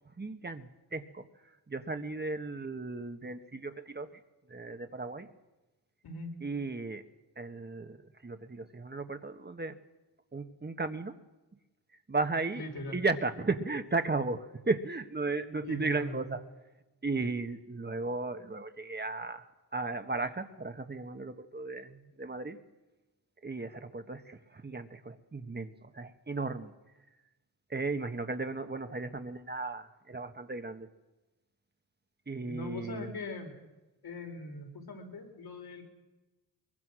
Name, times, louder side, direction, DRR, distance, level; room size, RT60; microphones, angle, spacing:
voice 1, 0.1-4.2 4.5-5.3 6.4-7.0 7.4-9.8 10.3-11.2 12.1-12.7 12.9-16.5 17.0-22.6 23.4-26.7 27.7-30.9 32.3-33.1, right 3 dB, 25° right, 8 dB, 1.4 m, -35 dB
voice 2, 6.0-6.4 12.5-13.0 15.6-16.3 32.4-33.5 34.0-35.8, left 2 dB, 70° left, 2 dB, 4.8 m, -41 dB
22.5 x 22.0 x 6.2 m, 1.1 s
cardioid pair, 80°, 39 cm